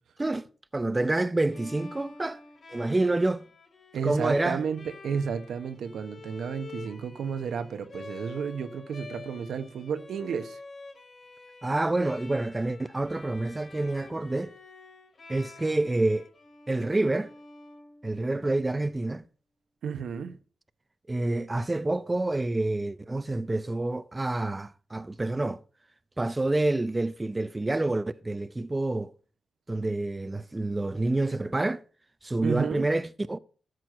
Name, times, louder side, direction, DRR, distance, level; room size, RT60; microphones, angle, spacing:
voice 1, 0.7-2.4 2.7-3.5 4.0-4.6 11.6-14.5 15.3-16.3 16.7-17.3 18.0-19.2 21.1-25.6 26.2-29.1 29.7-31.8 32.2-33.4, right 2 dB, 25° right, 0.6 m, -28 dB
Bowed string instrument, 1.5-18.4, left 3 dB, 60° left, 2.8 m, -48 dB
voice 2, 3.9-10.6 19.8-20.4 32.4-32.9, right 6 dB, 80° right, 1.0 m, -32 dB
13.0 x 6.1 x 6.0 m
supercardioid pair, 50°, 0 cm